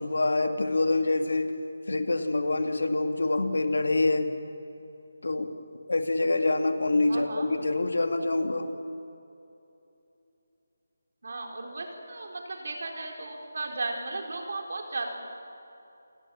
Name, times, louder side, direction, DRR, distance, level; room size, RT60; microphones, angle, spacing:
voice 1, 0.0-1.5 1.9-4.3 5.2-5.5 5.9-8.7, left 2 dB, 80° left, 7 dB, 2.2 m, -26 dB
voice 2, 7.1-7.5 11.2-15.1, right 3 dB, 60° right, 2 dB, 4.6 m, -35 dB
28.5 x 17.5 x 7.3 m, 2.8 s
figure-of-eight pair, 160°, 0 cm